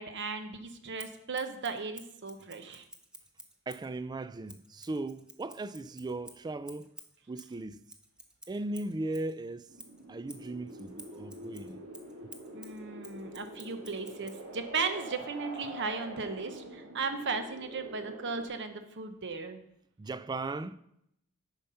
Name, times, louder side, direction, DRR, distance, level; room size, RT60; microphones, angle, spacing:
voice 1, 0.0-2.9 12.5-19.6, right 4 dB, 55° right, 0.9 m, -36 dB
Scissors, 1.0-3.9 4.5-9.3 9.8-14.4, right 1 dB, 5° right, 0.7 m, -52 dB
voice 2, 3.7-6.9 7.3-7.8 8.5-9.7 10.1-11.8 20.0-20.8, right 2 dB, 20° right, 0.3 m, -37 dB
sound 1, 9.7-18.5, right 1 dB, 80° right, 2.0 m, -46 dB
8.9 x 5.6 x 5.5 m
head